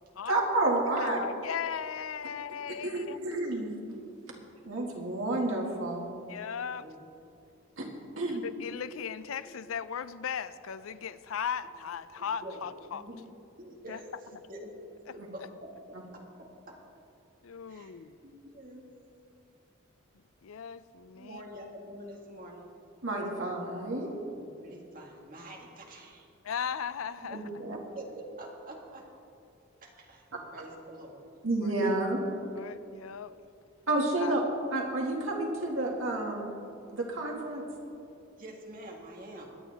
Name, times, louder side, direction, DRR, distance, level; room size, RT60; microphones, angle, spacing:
voice 1, 0.3-1.2 2.8-3.8 4.7-6.1 7.8-7.9 8.2-8.4 15.2-15.3 15.9-16.0 23.0-24.1 27.3-27.8 31.4-32.2 33.9-34.4 34.7-36.5 36.9-37.7, right 2 dB, 80° right, -1 dB, 2.1 m, -30 dB
voice 2, 1.0-3.2 6.3-6.8 8.3-13.0 13.9-14.0 17.4-18.2 20.4-21.4 26.4-27.4 31.8-31.9 32.6-33.3 34.2-34.3, left 7 dB, 85° left, 14 dB, 0.5 m, -37 dB
voice 3, 12.1-12.7 12.9-13.2 13.6-14.1 14.5-14.8 15.1-16.8 17.7-17.9 18.2-18.8 21.1-22.7 24.3-26.3 27.3-29.1 29.8-31.4 38.4-39.5, right 1 dB, 45° right, 0 dB, 1.8 m, -46 dB
22.5 x 8.9 x 3.5 m, 2.6 s
head